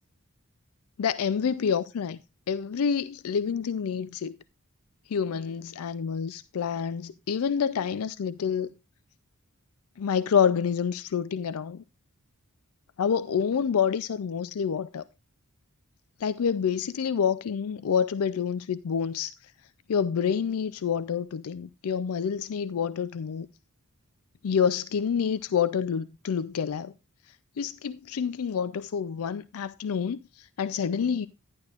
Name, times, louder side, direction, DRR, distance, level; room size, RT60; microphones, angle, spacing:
voice 1, 1.0-2.2 2.5-4.4 5.1-8.7 10.0-11.8 13.0-15.0 16.2-19.3 19.9-23.5 24.4-26.9 27.6-31.3, left 7 dB, 70° left, 0.4 m, -28 dB
11.5 x 10.5 x 2.4 m
head